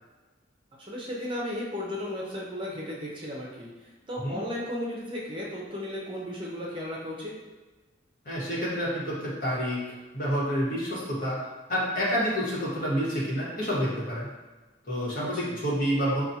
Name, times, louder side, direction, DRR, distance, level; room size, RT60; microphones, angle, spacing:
voice 1, 0.8-3.7 4.1-7.3 15.2-15.6, left 1 dB, 25° right, -4 dB, 0.6 m, -35 dB
voice 2, 8.2-9.8 10.1-11.4 11.7-14.3 14.9-16.3, equal, 50° left, -6 dB, 1.2 m, -28 dB
5.7 x 2.3 x 2.8 m, 1.3 s
head